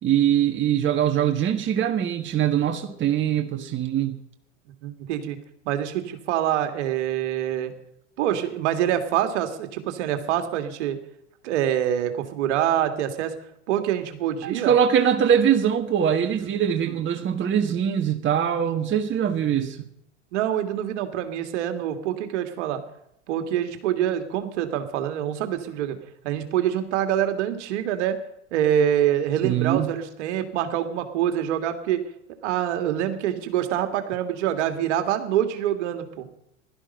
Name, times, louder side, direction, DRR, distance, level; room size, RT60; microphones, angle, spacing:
voice 1, 0.0-4.2 14.4-19.9 29.4-30.0, right 9 dB, 30° right, 1.6 m, -22 dB
voice 2, 4.8-5.4 5.7-7.7 8.2-11.0 11.4-13.3 13.7-14.8 16.8-17.0 20.3-22.8 23.3-26.0 26.2-28.2 28.5-32.0 32.4-36.3, right 10 dB, 70° right, 2.1 m, -25 dB
16.5 x 12.5 x 5.4 m
hypercardioid pair, 100°, 36 cm